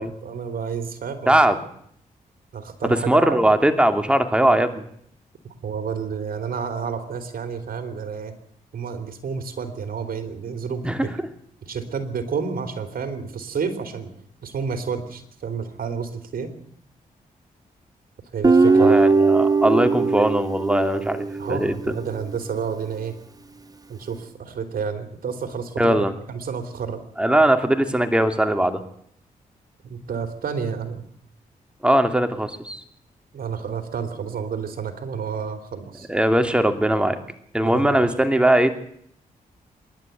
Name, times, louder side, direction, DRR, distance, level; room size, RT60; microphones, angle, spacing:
voice 1, 0.0-1.5 2.5-3.4 5.6-8.3 8.7-11.1 11.6-14.1 14.4-16.5 18.3-19.0 21.4-23.1 23.9-27.0 29.8-31.0 33.3-36.1 37.6-38.1, right 6 dB, 70° right, 7 dB, 3.2 m, -30 dB
voice 2, 1.3-1.6 3.1-4.8 10.8-11.0 18.7-21.7 25.8-26.1 27.2-28.8 31.8-32.8 36.1-37.2 37.5-38.7, right 1 dB, 5° right, 6 dB, 2.7 m, -20 dB
Guitar, 18.4-21.7, right 4 dB, 25° right, 0.9 m, -19 dB
25.5 x 11.5 x 9.2 m, 0.69 s
cardioid pair, 60°, 15 cm